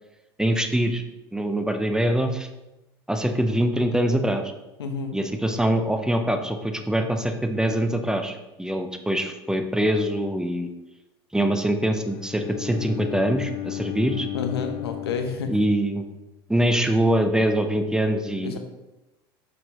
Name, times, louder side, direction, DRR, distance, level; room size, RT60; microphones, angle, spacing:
voice 1, 0.4-1.0 1.3-2.5 3.1-4.4 5.1-10.7 11.3-14.3 15.5-16.0 16.5-18.6, right 1 dB, 5° right, 7 dB, 0.7 m, -24 dB
voice 2, 4.8-5.1 14.3-15.5 18.4-18.6, left 5 dB, 90° left, 6 dB, 0.8 m, -29 dB
Bowed string instrument, 12.0-16.2, left 13 dB, 45° left, 0.5 m, -34 dB
6.5 x 6.0 x 3.0 m, 0.99 s
hypercardioid pair, 85°, 13 cm